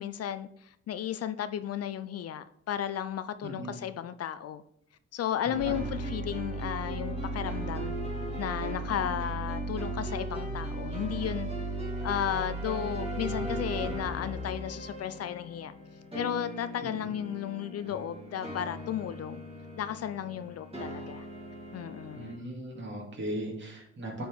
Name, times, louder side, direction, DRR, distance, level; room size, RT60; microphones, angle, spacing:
voice 1, 0.0-4.6 5.1-7.9 8.4-11.5 12.0-15.7 16.1-19.4 19.8-21.3 21.7-22.4, left 10 dB, 55° left, 0.5 m, -34 dB
voice 2, 3.4-3.8 5.5-5.7 16.8-16.9 22.1-24.3, right 1 dB, 40° right, 2.5 m, -37 dB
sound 1, 5.5-22.4, right 1 dB, 20° right, 2.8 m, -37 dB
9.5 x 4.3 x 3.5 m
cardioid pair, 90°, 30 cm